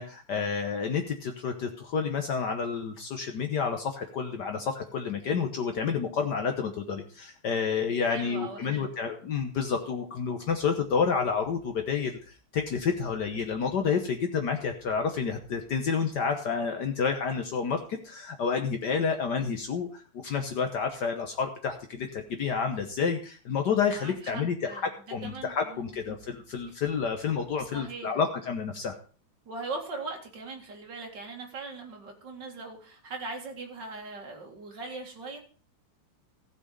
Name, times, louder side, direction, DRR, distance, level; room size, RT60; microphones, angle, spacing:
voice 1, 0.0-12.2 12.5-29.0, left 6 dB, 85° left, 5 dB, 0.9 m, -29 dB
voice 2, 8.0-8.9 24.0-24.9 25.2-26.0 27.7-28.1 29.5-35.4, right 3 dB, 40° right, 1 dB, 2.5 m, -40 dB
15.0 x 6.3 x 5.3 m, 0.39 s
omnidirectional pair, 3.4 m